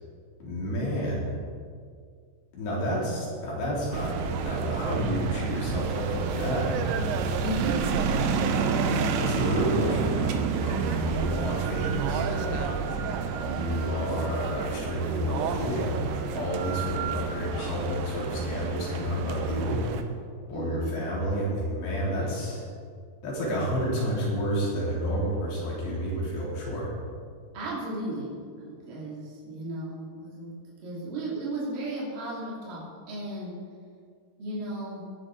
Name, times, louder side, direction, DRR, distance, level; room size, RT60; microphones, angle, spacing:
voice 1, 0.4-1.4 2.5-6.8 9.2-12.6 13.4-19.8 20.5-22.7 23.2-26.9, equal, 80° left, -5 dB, 5.4 m, -30 dB
sound 1, 3.9-20.0, right 6 dB, 80° right, 2.1 m, -29 dB
voice 2, 7.2-7.8 8.7-9.1 20.5-21.0 22.2-22.3 27.5-30.5 30.8-33.5 34.4-35.1, right 1 dB, 55° right, -5 dB, 4.5 m, -35 dB
18.0 x 10.5 x 4.0 m, 2.1 s
omnidirectional pair, 5.0 m